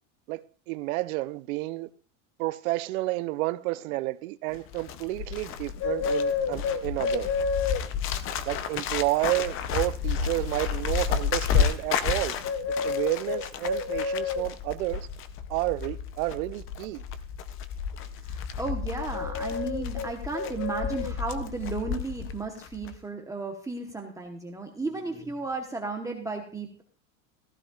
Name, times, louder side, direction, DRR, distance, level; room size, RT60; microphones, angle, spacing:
voice 1, 0.3-1.9 2.4-7.3 8.5-12.4 12.8-15.1 15.5-17.0, right 19 dB, 85° right, 0.6 m, -30 dB
Bird, 4.5-22.4 22.6-22.9, left 7 dB, 30° left, 0.6 m, -30 dB
voice 2, 18.3-26.8, right 3 dB, 10° right, 1.0 m, -34 dB
15.0 x 13.0 x 2.3 m
supercardioid pair, 160°, 41 cm